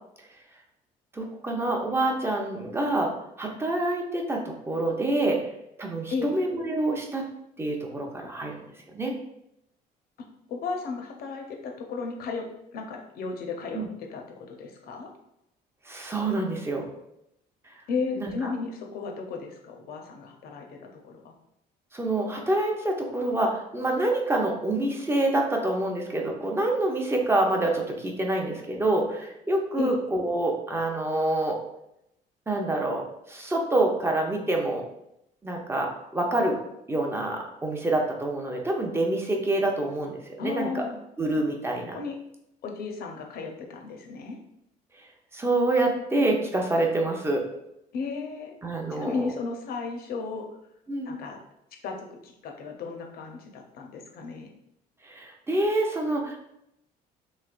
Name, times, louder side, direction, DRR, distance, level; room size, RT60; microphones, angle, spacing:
voice 1, 1.1-5.4 5.8-7.3 7.6-8.6 8.9-9.1 13.7-13.9 15.9-16.9 17.7-17.8 18.2-18.5 21.9-31.6 32.5-34.8 35.4-36.6 36.9-40.8 41.2-42.0 45.3-47.5 48.6-49.3 50.9-51.1 55.0-56.4, right 2 dB, 15° right, 1 dB, 0.6 m, -27 dB
voice 2, 10.5-12.5 12.7-15.1 17.9-21.3 29.8-30.0 40.4-41.0 41.9-42.2 42.6-44.4 47.9-48.5 48.9-50.5 51.1-51.4 51.8-52.0 52.2-54.5, left 4 dB, 65° left, 2 dB, 0.7 m, -34 dB
3.2 x 3.0 x 2.4 m, 0.80 s
cardioid pair, 110°, 17 cm